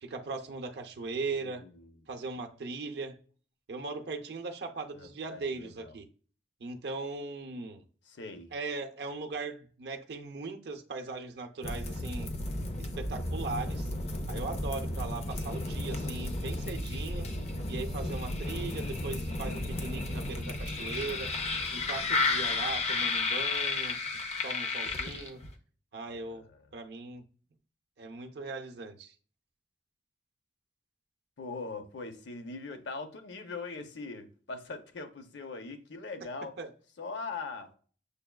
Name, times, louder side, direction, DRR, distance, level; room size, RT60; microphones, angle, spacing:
voice 1, 0.0-1.6 2.1-3.2 3.7-6.1 6.6-7.8 8.5-12.3 12.8-13.9 14.3-17.3 17.7-21.3 21.7-24.0 24.4-25.4 25.9-26.5 26.7-27.2 28.0-29.1 36.6-36.7, right 3 dB, 65° right, 0.5 m, -39 dB
voice 2, 1.3-2.0 4.9-5.9 8.1-8.5 26.1-26.6 31.4-36.5 37.0-37.7, left 3 dB, 85° left, 0.6 m, -41 dB
sound 1, 11.6-25.5, left 2 dB, 35° left, 0.5 m, -33 dB
6.6 x 2.3 x 2.2 m
head